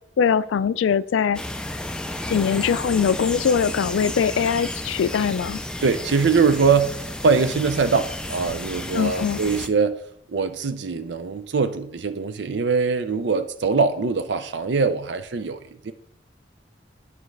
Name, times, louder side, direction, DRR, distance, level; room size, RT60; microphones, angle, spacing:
voice 1, 0.2-1.4 2.3-5.6 8.9-9.4, left 7 dB, 90° left, 15 dB, 0.3 m, -22 dB
sound 1, 1.3-9.7, left 1 dB, 5° left, 0.3 m, -32 dB
voice 2, 5.8-10.0 10.3-15.9, right 5 dB, 70° right, 11 dB, 0.5 m, -22 dB
11.5 x 4.7 x 3.3 m, 0.71 s
head